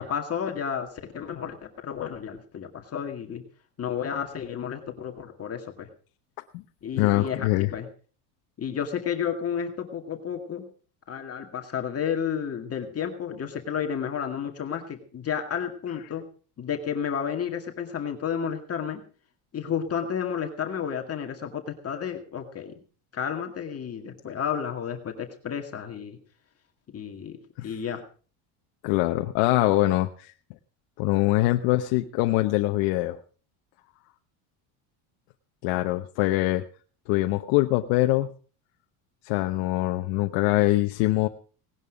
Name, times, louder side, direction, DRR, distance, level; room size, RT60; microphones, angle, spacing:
voice 1, 0.0-3.4 3.8-5.9 6.8-7.9 8.6-10.7 11.1-16.2 16.6-19.0 19.5-22.8 23.1-26.2 26.9-27.4 27.6-28.0, left 8 dB, 30° left, 4 dB, 2.1 m, -31 dB
voice 2, 7.0-7.7 27.6-27.7 28.8-30.3 31.0-33.2 35.6-36.6 37.1-38.3 39.2-41.3, left 18 dB, 75° left, 5 dB, 1.1 m, -23 dB
18.5 x 11.0 x 5.1 m, 0.41 s
cardioid pair, 130°, 45 cm